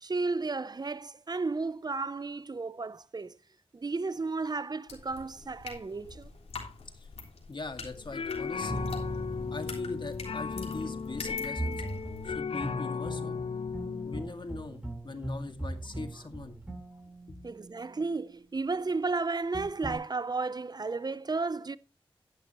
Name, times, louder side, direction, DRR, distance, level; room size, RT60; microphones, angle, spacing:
voice 1, 0.0-3.3 3.7-6.3 17.4-21.8, right 3 dB, 45° right, 0.6 m, -33 dB
sound 1, 4.9-12.3, left 4 dB, 90° left, 3.4 m, -45 dB
voice 2, 7.5-8.9 9.5-11.8 12.3-13.4 14.1-16.6 17.3-17.4, left 3 dB, 55° left, 2.0 m, -41 dB
sound 2, 7.9-14.2, left 5 dB, 70° left, 0.6 m, -35 dB
sound 3, 8.7-18.1 19.5-20.0, right 1 dB, 15° right, 7.5 m, -40 dB
11.5 x 11.0 x 3.0 m
cardioid pair, 50°, 10 cm